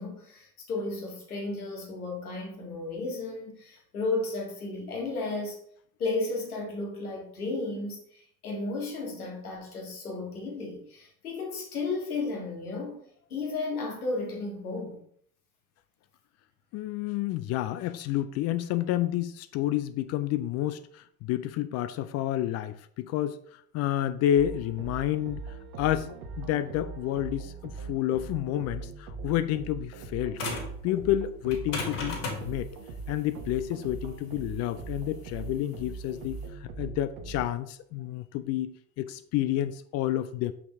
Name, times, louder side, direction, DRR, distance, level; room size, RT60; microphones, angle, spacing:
voice 1, 0.0-5.6 6.0-13.0 13.3-15.0, left 3 dB, 80° left, -1 dB, 2.1 m, -33 dB
voice 2, 16.7-25.4 25.8-30.4 30.8-32.7 33.1-40.5, left 12 dB, 40° left, 12 dB, 0.4 m, -30 dB
sound 1, 24.3-37.5, right 4 dB, 55° right, 1.3 m, -41 dB
sound 2, 30.4-30.8 31.5-36.4, left 2 dB, 55° left, 3.1 m, -36 dB
6.1 x 5.7 x 3.5 m, 0.64 s
figure-of-eight pair, 70°, 43 cm